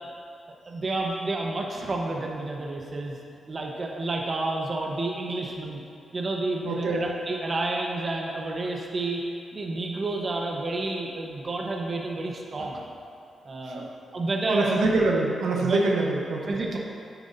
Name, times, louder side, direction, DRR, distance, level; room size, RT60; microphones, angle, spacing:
voice 1, 0.7-3.2 3.5-5.8 6.1-9.2 9.5-12.8 13.4-14.8 15.6-15.8 16.5-16.8, right 2 dB, 40° right, 0 dB, 0.9 m, -30 dB
voice 2, 6.6-7.1 13.7-13.9 14.5-16.8, right 3 dB, 85° right, -1 dB, 1.0 m, -25 dB
9.2 x 9.2 x 2.6 m, 2.5 s
cardioid pair, 95°, 0 cm